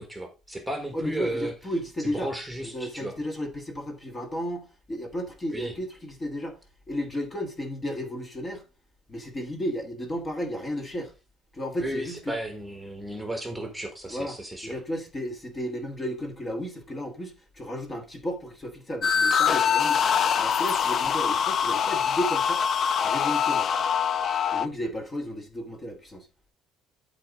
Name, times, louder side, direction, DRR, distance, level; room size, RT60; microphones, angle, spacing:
voice 1, 0.0-3.1 5.5-5.8 11.8-14.8, right 1 dB, 5° right, 1.6 m, -34 dB
voice 2, 0.9-2.3 2.6-6.6 6.9-8.6 9.1-11.1 11.5-12.3 14.1-14.4 14.6-20.0 20.4-22.6 23.0-23.7 24.5-26.3, equal, 20° left, 1.7 m, -33 dB
sound 1, 19.0-24.7, left 7 dB, 40° left, 0.5 m, -24 dB
11.5 x 4.2 x 3.7 m
cardioid pair, 130°, 0 cm